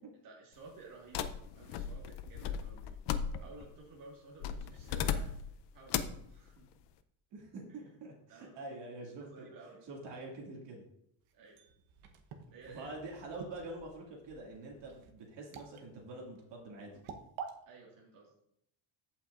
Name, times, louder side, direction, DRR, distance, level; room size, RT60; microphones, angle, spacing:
voice 1, 0.2-3.0 3.4-5.3 5.7-6.7 7.7-7.8 8.3-8.6 9.2-9.9 11.3-11.6 12.5-12.9 17.7-18.3, right 3 dB, 45° right, -3 dB, 1.7 m, -54 dB
sound 1, 1.1-3.7 4.4-5.5 5.9-6.2, left 8 dB, 60° left, 0.6 m, -36 dB
voice 2, 7.3-9.5 9.9-10.8 12.7-17.0, right 2 dB, 60° right, -2 dB, 2.2 m, -46 dB
sound 2, 11.2-17.5, right 6 dB, 80° right, 1.0 m, -49 dB
15.0 x 5.8 x 2.5 m, 0.75 s
cardioid pair, 160°, 48 cm